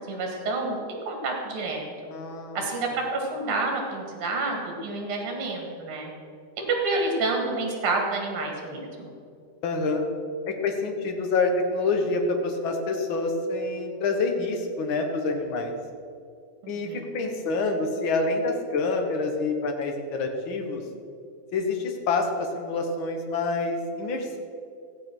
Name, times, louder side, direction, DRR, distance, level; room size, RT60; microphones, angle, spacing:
voice 1, 0.1-1.9 2.5-6.1 6.6-9.1 16.6-17.0, right 3 dB, 45° right, 1 dB, 2.7 m, -29 dB
voice 2, 2.1-2.7 9.6-10.1 10.4-15.7 16.7-16.9 17.1-20.8 21.5-24.4, left 3 dB, 50° left, 4 dB, 1.7 m, -27 dB
15.0 x 9.3 x 6.2 m, 2.4 s
omnidirectional pair, 3.7 m